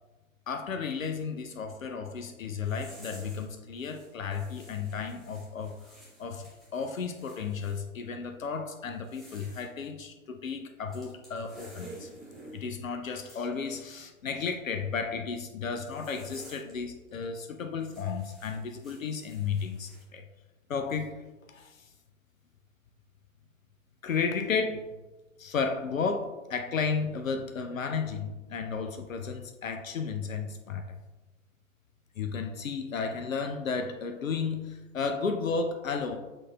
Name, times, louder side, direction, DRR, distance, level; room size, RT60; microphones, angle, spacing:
voice 1, 0.5-5.8 6.2-12.1 12.5-20.3 20.7-21.2 21.5-21.8 24.0-24.8 25.4-31.0 32.2-36.2, left 5 dB, 75° left, 6 dB, 0.6 m, -33 dB
sound 1, 2.6-3.5 3.8-7.8 8.9-9.7 10.9-12.6 13.2-13.4 15.9-16.7 17.1-17.2 17.8-20.0, right 1 dB, ahead, 0.5 m, -51 dB
6.2 x 3.9 x 2.2 m, 1.1 s
figure-of-eight pair, 115°, 41 cm